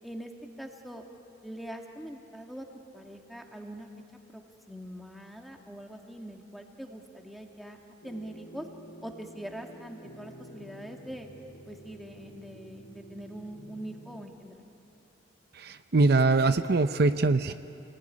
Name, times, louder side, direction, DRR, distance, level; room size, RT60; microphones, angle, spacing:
voice 1, 0.6-1.0 1.4-2.7 2.9-3.9 4.3-4.4 4.7-7.8 8.0-8.7 9.0-11.3 11.7-14.7, right 1 dB, ahead, 2 dB, 2.0 m, -43 dB
sound 1, 8.0-14.2, right 1 dB, 90° left, 2.5 m, -49 dB
voice 2, 15.5-17.5, right 3 dB, 55° right, 10 dB, 0.6 m, -23 dB
28.0 x 20.0 x 9.8 m, 2.7 s
head